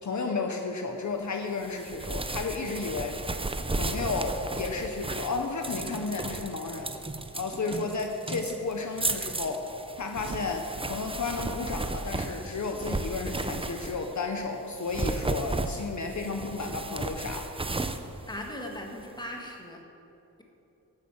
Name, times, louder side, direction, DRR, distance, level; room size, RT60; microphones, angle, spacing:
voice 1, 0.0-3.2 3.7-6.9 7.3-17.5, left 4 dB, 55° left, 4 dB, 1.0 m, -33 dB
sound 1, 1.6-14.2 14.7-19.0, right 2 dB, 15° right, 0.6 m, -34 dB
voice 2, 18.3-19.8, left 1 dB, 10° left, 1 dB, 1.8 m, -38 dB
12.5 x 9.2 x 7.2 m, 2.9 s
wide cardioid pair, 130°, 34 cm